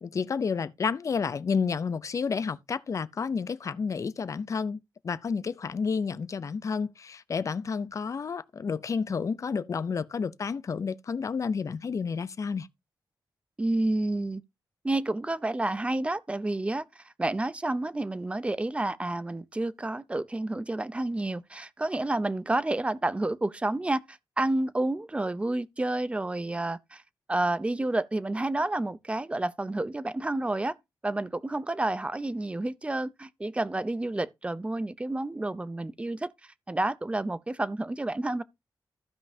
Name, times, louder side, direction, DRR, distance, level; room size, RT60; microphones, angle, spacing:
voice 1, 0.0-4.8 5.0-12.7, left 5 dB, 45° left, 0.5 m, -30 dB
voice 2, 13.6-14.4 14.8-27.0 27.3-30.8 31.0-36.3 36.7-38.4, right 2 dB, 15° right, 0.5 m, -30 dB
15.0 x 5.3 x 2.7 m
wide cardioid pair, 110°, 8 cm